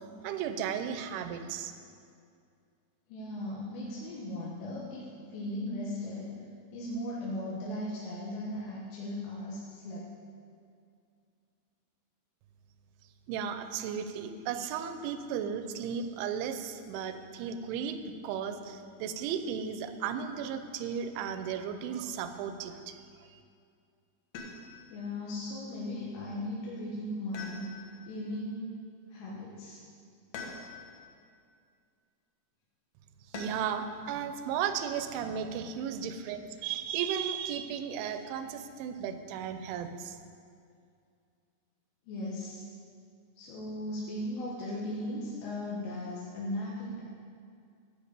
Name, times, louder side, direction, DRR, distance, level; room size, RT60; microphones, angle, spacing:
voice 1, 0.2-1.7 13.3-23.0 23.3-23.4 33.3-40.2, right 7 dB, 80° right, 9 dB, 2.9 m, -35 dB
voice 2, 3.1-6.3 6.7-10.1 24.9-27.6 28.1-28.8 29.1-29.8 42.1-42.6 43.4-47.0, left 1 dB, 90° left, -6 dB, 4.1 m, -37 dB
sound 1, 24.3-25.0 27.3-28.1 30.3-31.0 33.3-33.9 35.5-36.2, left 3 dB, 70° left, 2.1 m, -44 dB
14.0 x 6.0 x 8.1 m, 2.3 s
omnidirectional pair, 5.6 m